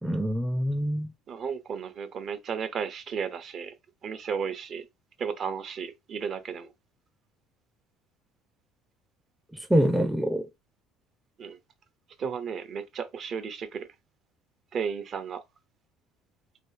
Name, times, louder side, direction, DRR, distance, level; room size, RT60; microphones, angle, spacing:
voice 1, 0.0-1.1 9.5-10.5, equal, 5° right, 0.5 m, -25 dB
voice 2, 1.3-3.7 4.0-4.9 5.2-6.7 11.4-11.6 12.2-13.9 14.7-15.4, right 6 dB, 50° right, 0.7 m, -34 dB
3.3 x 2.7 x 2.7 m
supercardioid pair, 105°, 0 cm